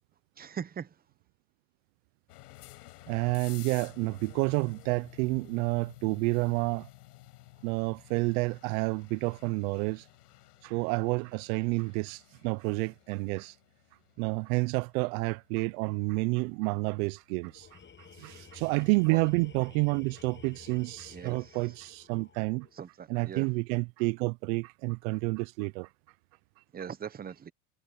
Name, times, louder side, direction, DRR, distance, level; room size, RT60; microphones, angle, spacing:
voice 1, 0.4-0.9 19.1-19.2 21.1-21.4 22.8-23.4 26.7-27.5, right 8 dB, 20° right, 1.0 m, -40 dB
sound 1, 2.3-19.1, left 18 dB, 85° left, 5.5 m, -54 dB
voice 2, 3.1-6.9 7.6-10.0 10.6-13.5 14.2-17.8 18.2-22.7 23.1-25.9, right 27 dB, 65° right, 0.7 m, -29 dB
Tools, 17.5-22.8, left 6 dB, 25° left, 7.7 m, -53 dB
supercardioid pair, 115°, 45 cm